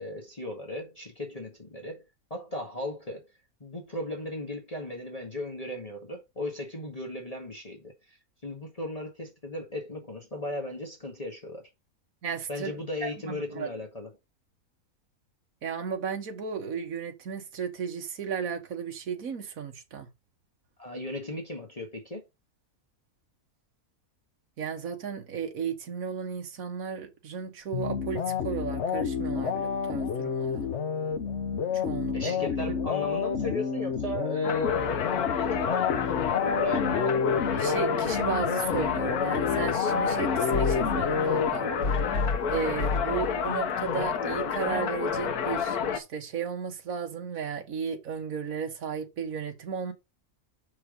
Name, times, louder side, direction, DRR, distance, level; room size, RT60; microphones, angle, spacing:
voice 1, 0.0-2.0 2.3-3.3 3.6-11.7 12.5-14.1 20.8-22.2 32.1-37.2, left 1 dB, 25° left, 1.9 m, -36 dB
voice 2, 12.2-13.7 15.6-20.1 24.6-30.7 31.7-32.5 37.6-41.7 42.5-49.9, right 6 dB, 70° right, 1.7 m, -34 dB
sound 1, 27.7-42.0, left 6 dB, 55° left, 1.1 m, -29 dB
sound 2, 34.4-46.0, left 6 dB, 90° left, 1.6 m, -29 dB
6.3 x 5.6 x 5.3 m
omnidirectional pair, 1.5 m